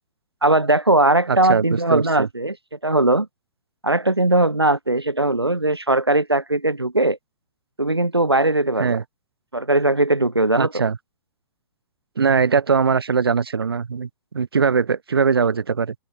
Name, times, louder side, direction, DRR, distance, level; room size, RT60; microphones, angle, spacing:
voice 1, 0.4-2.6 2.8-3.3 3.8-7.2 7.8-9.0 9.5-10.8, right 2 dB, 85° right, 2.3 m, -19 dB
voice 2, 1.3-2.3 8.8-9.0 10.6-11.0 12.2-15.9, right 5 dB, 70° right, 1.3 m, -21 dB
figure-of-eight pair, 110°, 13 cm